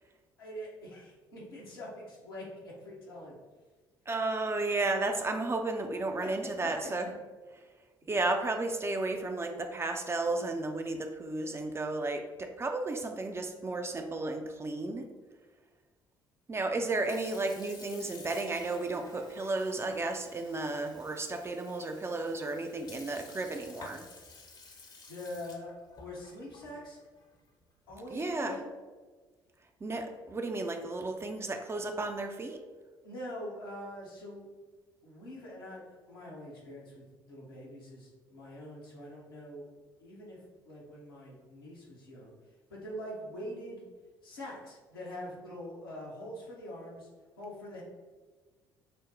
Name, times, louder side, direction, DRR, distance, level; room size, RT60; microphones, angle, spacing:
voice 1, 0.4-3.4 6.2-6.3 25.1-27.0 27.9-28.7 33.0-34.5 35.0-39.7 40.0-40.4 40.6-42.3 42.7-43.8 44.2-47.1 47.4-47.8, left 1 dB, 80° left, -5 dB, 1.0 m, -44 dB
voice 2, 4.1-7.1 8.1-15.1 16.5-24.1 28.1-28.6 29.8-32.6, right 2 dB, 20° right, 5 dB, 0.5 m, -33 dB
Sink (filling or washing) / Fill (with liquid), 16.7-28.3, left 3 dB, 35° left, 0.7 m, -53 dB
6.0 x 2.1 x 3.2 m, 1.4 s
figure-of-eight pair, 50°, 12 cm